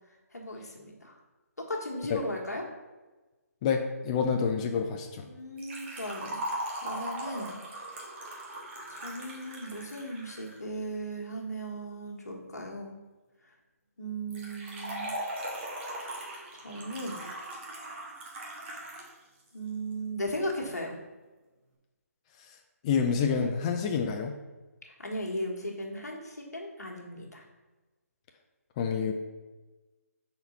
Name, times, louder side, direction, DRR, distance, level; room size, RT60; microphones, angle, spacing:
voice 1, 0.3-1.1 1.6-2.6 5.2-6.4 6.8-7.6 8.9-12.9 14.0-15.1 16.5-17.2 19.5-21.0 25.0-27.4, equal, 85° left, 0 dB, 1.4 m, -37 dB
voice 2, 3.6-5.2 22.8-24.3 28.8-29.1, left 6 dB, 25° left, 3 dB, 0.4 m, -28 dB
Liquid, 5.6-10.6 14.3-19.1 19.4-19.5 20.4-20.5, right 1 dB, 45° right, 1.5 m, -39 dB
4.3 x 4.0 x 5.5 m, 1.2 s
figure-of-eight pair, 150°, 9 cm